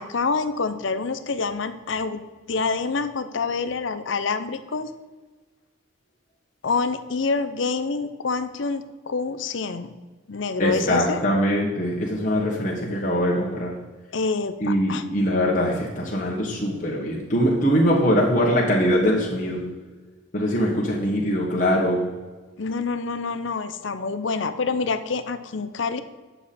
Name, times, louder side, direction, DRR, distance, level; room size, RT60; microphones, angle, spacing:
voice 1, 0.0-2.2 2.5-4.9 6.6-9.9 10.3-11.2 14.1-15.0 22.6-26.0, left 4 dB, 70° left, 11 dB, 0.6 m, -27 dB
voice 2, 10.6-13.7 14.6-19.6 20.3-22.1, equal, 40° left, -3 dB, 1.4 m, -22 dB
9.4 x 6.9 x 4.2 m, 1.3 s
head